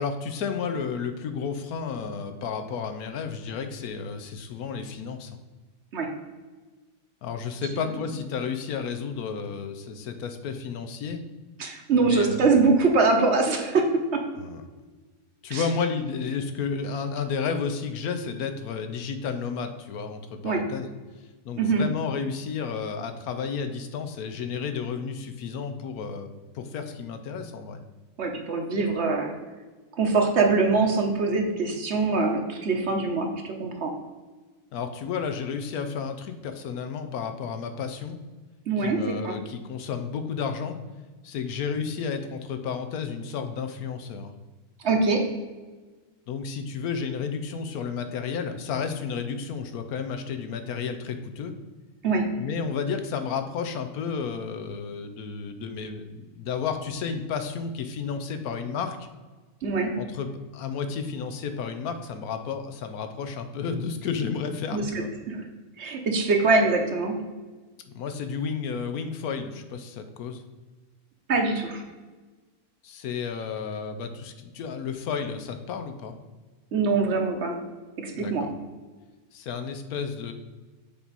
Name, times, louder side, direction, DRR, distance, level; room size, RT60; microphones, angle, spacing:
voice 1, 0.0-5.4 7.2-11.2 12.0-12.5 14.4-14.6 15.4-20.9 21.4-27.8 34.7-38.2 38.8-40.8 41.2-44.3 46.3-51.5 52.4-59.1 59.9-65.1 67.9-70.4 72.8-76.1 78.1-78.5 79.3-80.3, left 6 dB, 75° left, 8 dB, 1.1 m, -32 dB
voice 2, 11.6-14.2 15.5-15.6 20.4-20.6 21.6-21.8 28.2-29.3 30.0-33.9 38.7-39.4 44.8-45.2 52.0-52.3 59.6-59.9 64.7-65.4 65.8-67.2 71.3-71.8 76.7-77.6 78.0-78.4, right 3 dB, 50° right, 3 dB, 1.1 m, -23 dB
6.9 x 4.6 x 4.0 m, 1.3 s
omnidirectional pair, 1.6 m